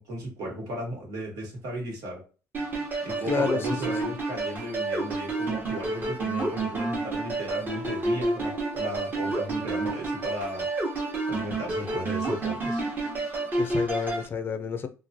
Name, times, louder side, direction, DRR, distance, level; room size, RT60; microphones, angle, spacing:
voice 1, 0.0-2.2 3.0-10.7 11.3-12.8, right 1 dB, 70° right, 1.5 m, -35 dB
sound 1, 2.5-14.3, right 2 dB, 30° right, 0.9 m, -29 dB
voice 2, 3.2-4.2 13.6-14.9, left 6 dB, 35° left, 0.4 m, -30 dB
3.0 x 2.3 x 2.6 m
cardioid pair, 125°, 7 cm